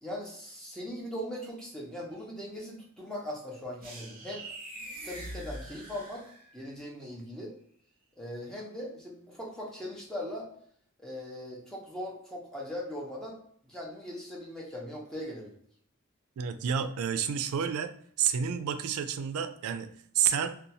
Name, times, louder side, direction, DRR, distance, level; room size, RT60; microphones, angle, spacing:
voice 1, 0.0-4.4 5.0-6.2 6.5-7.6 8.2-10.5 11.0-13.4 13.7-15.6, left 1 dB, 5° left, -3 dB, 0.7 m, -39 dB
sound 1, 3.8-6.7, right 1 dB, 40° right, 0.8 m, -43 dB
voice 2, 16.4-17.9 18.2-20.5, right 8 dB, 85° right, 10 dB, 0.3 m, -29 dB
2.6 x 2.2 x 2.7 m, 0.63 s
head